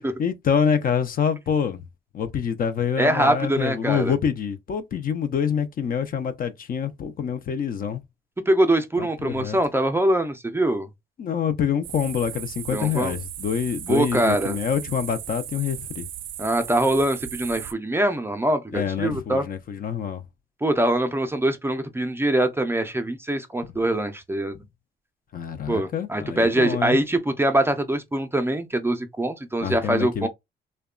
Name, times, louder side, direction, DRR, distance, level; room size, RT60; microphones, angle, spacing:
voice 1, 0.2-1.8 2.1-8.0 9.0-9.6 11.2-16.1 18.7-20.2 25.3-27.0 29.6-30.3, left 7 dB, 45° left, 0.4 m, -26 dB
voice 2, 3.0-4.1 8.5-10.9 12.7-13.1 13.9-14.6 16.4-19.5 20.6-24.6 25.7-30.3, right 1 dB, 10° right, 0.4 m, -23 dB
sound 1, 11.8-17.7, right 11 dB, 75° right, 0.4 m, -37 dB
2.8 x 2.1 x 2.3 m
cardioid pair, 90°, 20 cm